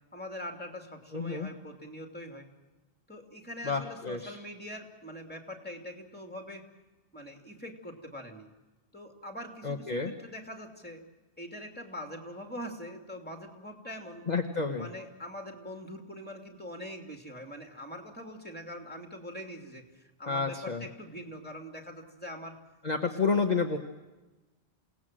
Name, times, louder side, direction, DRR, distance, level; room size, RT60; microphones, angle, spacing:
voice 1, 0.1-2.5 3.1-6.7 7.1-8.5 8.9-11.0 11.4-14.3 14.8-22.5 23.1-23.4, equal, 10° left, 3 dB, 2.8 m, -43 dB
voice 2, 1.1-1.5 3.6-4.4 9.6-10.1 14.3-14.9 20.3-20.8 22.8-23.8, left 4 dB, 40° left, 3 dB, 1.3 m, -30 dB
28.0 x 18.0 x 7.7 m, 1.1 s
omnidirectional pair, 1.1 m